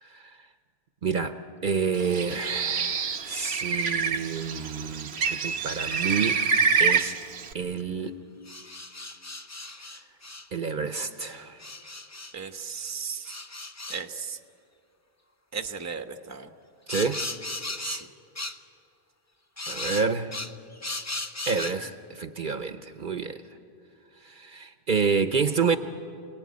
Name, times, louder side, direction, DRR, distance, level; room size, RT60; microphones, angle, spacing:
voice 1, 0.0-0.4 1.0-1.4 1.6-6.4 6.8-7.1 7.5-8.2 10.5-11.6 16.9-17.2 19.7-20.3 21.5-23.4 24.2-25.8, right 5 dB, 55° right, 9 dB, 1.0 m, -28 dB
Bird, 2.0-7.5, right 6 dB, 80° right, 1.1 m, -27 dB
sound 1, 7.0-7.2 8.5-10.5 11.6-12.3 13.3-14.1 16.9-18.1 18.4-18.6 19.6-21.8, left 2 dB, 20° left, 0.6 m, -36 dB
voice 2, 12.3-13.4 13.9-14.4 15.5-16.5 17.8-18.1, right 6 dB, 15° right, 7 dB, 0.9 m, -36 dB
27.5 x 19.5 x 9.6 m, 2.5 s
omnidirectional pair, 1.1 m